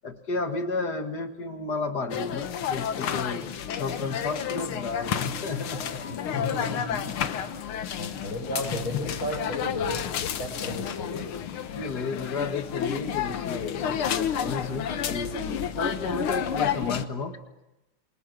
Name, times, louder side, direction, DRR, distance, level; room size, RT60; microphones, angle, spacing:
voice 1, 0.0-3.5 3.8-6.1 11.7-17.4, left 3 dB, 50° left, 6 dB, 2.4 m, -32 dB
sound 1, 2.1-17.1, left 8 dB, 90° left, 2.0 m, -31 dB
voice 2, 6.1-7.2 8.0-11.3, left 1 dB, 70° left, 3 dB, 6.2 m, -34 dB
28.0 x 24.5 x 6.2 m, 0.96 s
omnidirectional pair, 2.3 m